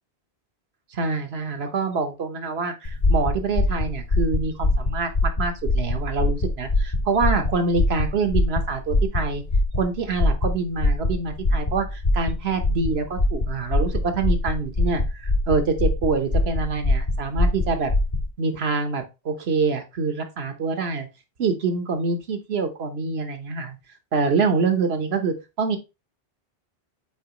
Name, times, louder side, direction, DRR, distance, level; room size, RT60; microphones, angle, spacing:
voice 1, 0.9-9.4 9.7-17.9 18.4-21.1 21.4-23.8 24.1-25.8, right 4 dB, 75° right, 7 dB, 1.3 m, -26 dB
sound 1, 2.9-18.3, left 2 dB, 45° left, 1.3 m, -23 dB
7.0 x 4.6 x 3.0 m, 0.26 s
omnidirectional pair, 1.1 m